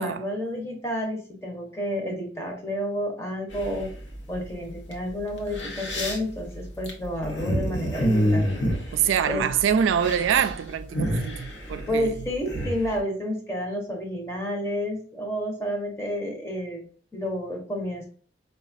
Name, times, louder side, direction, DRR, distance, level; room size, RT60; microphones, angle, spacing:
voice 1, 0.0-3.9 4.3-8.5 9.3-9.4 11.9-16.8 17.1-18.1, equal, 15° left, 0.8 m, -30 dB
sound 1, 3.5-4.1 4.9-5.0 5.4-9.6 9.9-10.5 10.8-12.9, equal, 65° left, 0.9 m, -27 dB
voice 2, 8.9-12.1, right 8 dB, 85° right, 0.3 m, -25 dB
4.8 x 2.3 x 2.4 m
head